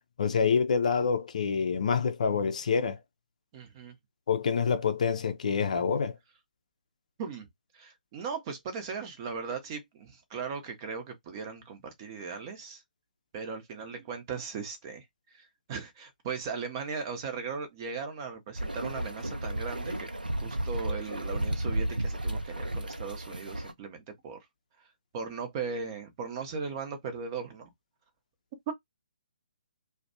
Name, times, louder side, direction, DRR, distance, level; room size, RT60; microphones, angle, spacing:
voice 1, 0.2-3.0 4.3-6.1, left 6 dB, 55° left, 0.5 m, -27 dB
voice 2, 3.5-3.9 7.2-7.5 7.7-12.8 13.3-15.1 15.3-20.1 20.4-24.4 25.1-27.7 28.7-28.8, right 5 dB, 30° right, 0.8 m, -38 dB
sound 1, 18.5-23.7, right 1 dB, 90° right, 0.5 m, -33 dB
2.5 x 2.2 x 2.6 m
figure-of-eight pair, 135°, 5 cm